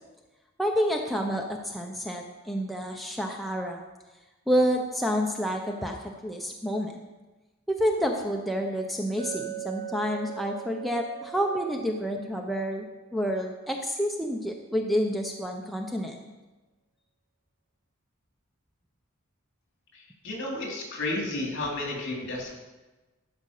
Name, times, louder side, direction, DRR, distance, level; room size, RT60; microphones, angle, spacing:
voice 1, 0.6-3.8 4.5-6.0 6.2-7.0 7.7-12.9 13.1-16.3, equal, ahead, 1 dB, 0.7 m, -29 dB
Chink clink, 9.2-13.4, right 15 dB, 45° right, 1.7 m, -41 dB
voice 2, 20.2-22.5, left 2 dB, 60° left, 0 dB, 2.9 m, -32 dB
12.5 x 5.2 x 6.6 m, 1.2 s
head